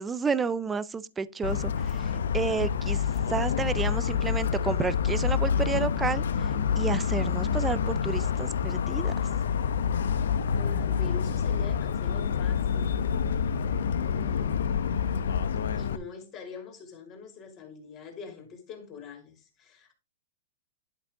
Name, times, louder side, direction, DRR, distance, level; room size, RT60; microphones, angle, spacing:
voice 1, 0.0-9.1, right 5 dB, 10° right, 0.4 m, -31 dB
Motor vehicle (road) / Siren, 1.4-16.0, left 7 dB, 85° left, 0.8 m, -27 dB
voice 2, 10.5-12.9 15.7-19.9, left 5 dB, 25° left, 2.6 m, -44 dB
11.0 x 6.0 x 3.6 m
hypercardioid pair, 165°, 0 cm